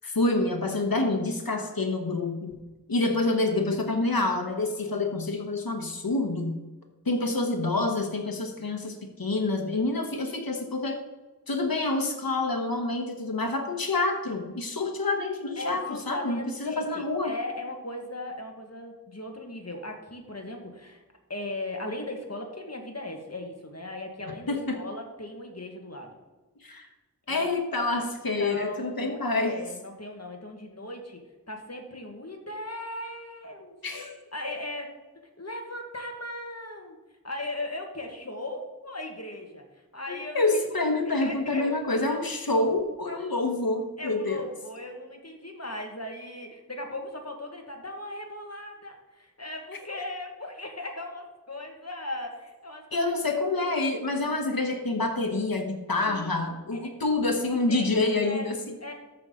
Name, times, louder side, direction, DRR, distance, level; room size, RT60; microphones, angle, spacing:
voice 1, 0.0-2.6 2.9-6.6 7.0-11.0 11.5-17.3 24.5-24.8 26.6-26.9 27.3-29.6 33.8-34.1 40.1-44.5 52.9-58.8, left 2 dB, 90° left, 3 dB, 1.2 m, -27 dB
voice 2, 15.6-21.0 21.3-26.1 27.3-27.4 28.4-31.2 31.5-33.7 34.3-34.9 35.4-37.0 37.2-39.6 39.9-40.8 41.2-41.7 44.0-53.1 56.1-56.4 56.7-56.9 57.7-58.5 58.8-58.9, left 1 dB, 45° left, 2 dB, 1.7 m, -38 dB
13.5 x 5.5 x 3.8 m, 1.2 s
wide cardioid pair, 40°, 35 cm